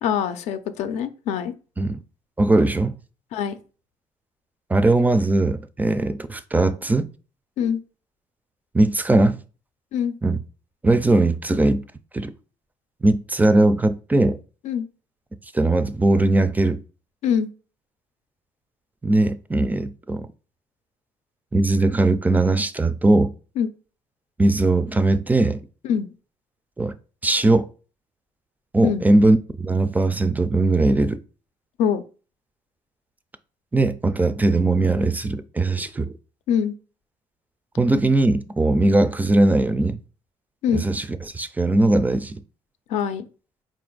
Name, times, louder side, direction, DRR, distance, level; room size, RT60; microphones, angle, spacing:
voice 1, 0.0-1.5 3.3-3.6 7.6-7.8 9.9-10.1 14.6-14.9 17.2-17.5 23.6-23.7 25.8-26.1 28.8-29.0 31.8-32.0 36.5-36.7 40.6-40.8 42.9-43.2, left 8 dB, 80° left, 0.5 m, -23 dB
voice 2, 2.4-3.0 4.7-7.1 8.7-9.4 10.2-10.4 10.8-11.8 12.1-12.3 13.0-14.4 15.5-16.8 19.0-20.3 21.5-23.3 24.4-25.6 26.8-26.9 27.2-27.7 28.7-31.2 33.7-36.1 37.8-40.0 40.7-41.0 41.3-42.4, right 2 dB, 15° right, 0.3 m, -19 dB
4.2 x 2.5 x 3.8 m
cardioid pair, 90°, 12 cm